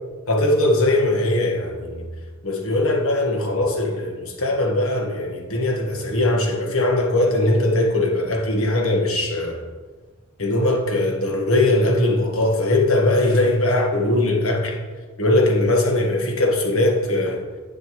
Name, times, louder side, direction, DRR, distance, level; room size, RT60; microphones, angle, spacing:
voice 1, 0.3-2.1 2.4-9.6 10.4-14.8 15.2-17.4, left 1 dB, 75° left, 1.5 m, -20 dB
11.0 x 8.8 x 3.1 m
head